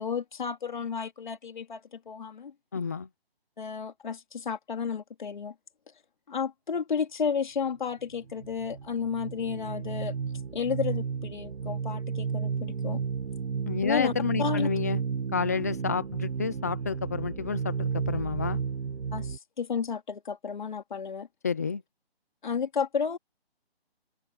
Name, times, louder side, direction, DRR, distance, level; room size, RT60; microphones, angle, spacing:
voice 1, 0.0-2.5 3.6-5.5 6.3-10.1 10.5-13.0 13.8-14.1 14.4-14.7 19.1-21.3 22.4-23.2, left 6 dB, 50° left, 3.9 m, -32 dB
voice 2, 2.7-3.1 13.6-15.0 15.3-18.6 21.4-21.8, left 5 dB, 15° left, 0.8 m, -30 dB
sound 1, 8.1-19.4, right 6 dB, 70° right, 1.8 m, -33 dB
hypercardioid pair, 170°, 31 cm